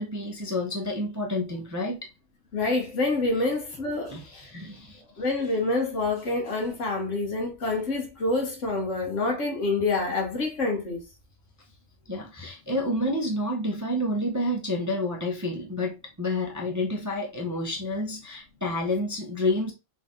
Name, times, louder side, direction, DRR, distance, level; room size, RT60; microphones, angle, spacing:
voice 1, 0.0-2.1 3.4-3.5 4.1-5.0 12.1-19.7, left 1 dB, 20° right, 0.5 m, -29 dB
voice 2, 2.5-4.5 5.2-11.0, left 3 dB, 65° left, 1.4 m, -27 dB
3.8 x 2.7 x 3.6 m
omnidirectional pair, 1.4 m